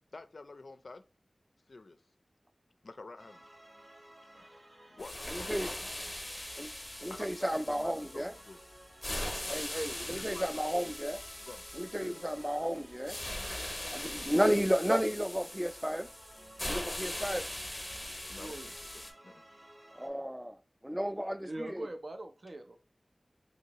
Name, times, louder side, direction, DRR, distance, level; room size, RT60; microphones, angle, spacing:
voice 1, 0.1-1.0 1.7-2.0 2.8-3.5 4.4-4.5 4.9-5.9 7.1-8.6 10.1-10.8 11.4-11.6 11.9-12.2 18.3-19.4, left 3 dB, 80° left, 0.3 m, -49 dB
sound 1, 3.2-20.1, right 1 dB, 50° right, 0.9 m, -56 dB
sound 2, 5.0-19.1, left 1 dB, 20° left, 0.7 m, -41 dB
voice 2, 5.3-5.7 6.6-6.7 7.0-8.3 9.5-11.2 11.7-13.2 13.9-16.1 16.7-17.5 20.0-20.6 20.8-21.9, equal, 10° right, 0.3 m, -32 dB
voice 3, 18.4-18.7 21.4-22.8, right 1 dB, 65° right, 0.5 m, -41 dB
3.0 x 2.7 x 2.9 m
wide cardioid pair, 45°, 0 cm